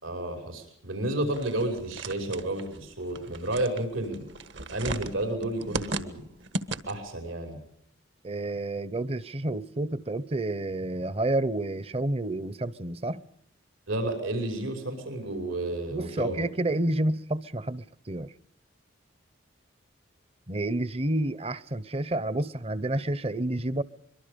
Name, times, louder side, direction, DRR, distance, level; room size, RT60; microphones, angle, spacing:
voice 1, 0.0-4.2 4.7-6.2 6.9-7.6 13.9-16.4, right 1 dB, 85° right, 5.8 m, -31 dB
sound 1, 1.3-7.2, right 2 dB, 65° right, 1.5 m, -37 dB
voice 2, 8.2-13.2 15.9-18.3 20.5-23.8, right 1 dB, 30° right, 0.8 m, -29 dB
24.5 x 23.5 x 5.2 m
head